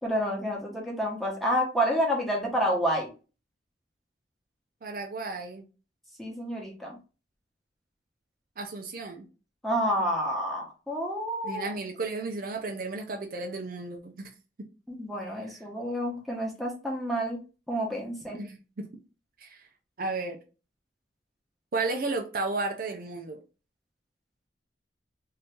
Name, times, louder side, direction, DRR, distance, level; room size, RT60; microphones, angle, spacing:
voice 1, 0.0-3.1 6.2-7.0 9.6-11.7 14.9-17.4 17.7-18.4, equal, ahead, 0.9 m, -29 dB
voice 2, 4.8-5.7 8.6-9.3 11.4-14.3 18.3-19.0 19.4-19.7 20.0-20.4 21.7-23.4, right 3 dB, 55° right, 0.5 m, -33 dB
2.9 x 2.7 x 3.4 m
head